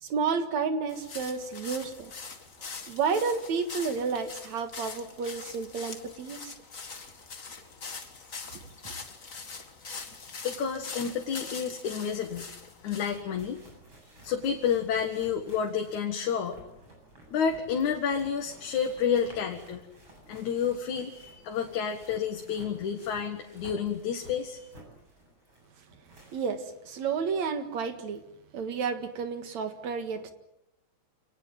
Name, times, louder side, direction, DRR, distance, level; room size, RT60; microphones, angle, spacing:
voice 1, 0.0-2.1 2.9-6.5 8.8-8.9 26.3-28.2 28.5-30.3, right 5 dB, 70° right, 8 dB, 3.0 m, -31 dB
sound 1, 0.9-13.2, left 4 dB, 30° left, 1.9 m, -43 dB
voice 2, 10.4-12.5 12.8-13.6 14.2-16.6 17.3-19.8 20.3-24.7, left 7 dB, 80° left, 3 dB, 3.1 m, -30 dB
sound 2, 12.8-26.9 27.3-27.4 28.1-28.2, right 1 dB, 40° right, 9.0 m, -53 dB
27.0 x 19.5 x 9.1 m, 0.85 s
omnidirectional pair, 3.3 m